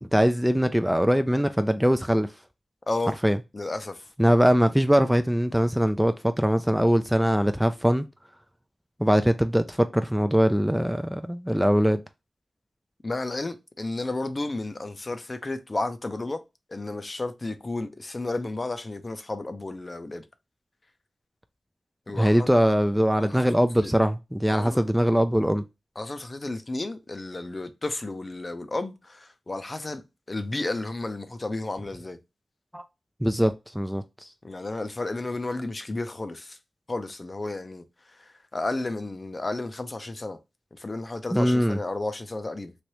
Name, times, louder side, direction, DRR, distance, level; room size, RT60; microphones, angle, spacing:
voice 1, 0.0-2.3 3.2-3.4 4.2-8.1 9.0-12.0 22.1-25.6 32.7-32.8 33.2-34.3 41.3-41.8, equal, 5° right, 0.4 m, -22 dB
voice 2, 2.9-3.2 3.5-4.0 13.0-16.4 16.7-20.3 22.1-22.5 23.2-23.9 24.5-24.8 26.0-30.0 30.3-32.2 34.4-36.6 36.9-40.4 40.7-42.7, left 2 dB, 40° left, 0.6 m, -32 dB
3.2 x 2.5 x 2.9 m
cardioid pair, 45°, 0 cm